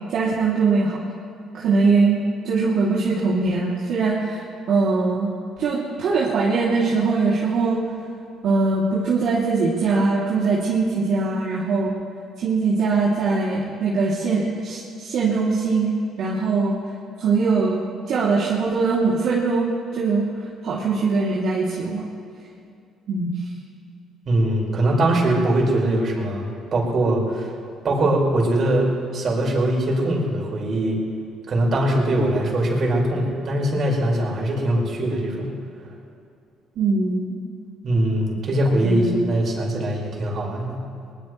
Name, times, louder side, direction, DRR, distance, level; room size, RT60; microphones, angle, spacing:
voice 1, 0.1-1.0 1.5-5.3 5.6-7.8 8.4-11.9 12.4-16.7 17.2-19.7 19.9-20.2 20.6-22.1 23.1-23.3 36.8-37.4 38.8-39.1, right 4 dB, 65° right, -6 dB, 2.7 m, -21 dB
voice 2, 24.2-27.5 27.8-31.0 31.5-35.5 37.8-40.8, right 1 dB, 50° right, -2 dB, 4.9 m, -21 dB
21.5 x 20.5 x 3.2 m, 2.4 s
supercardioid pair, 70°, 0 cm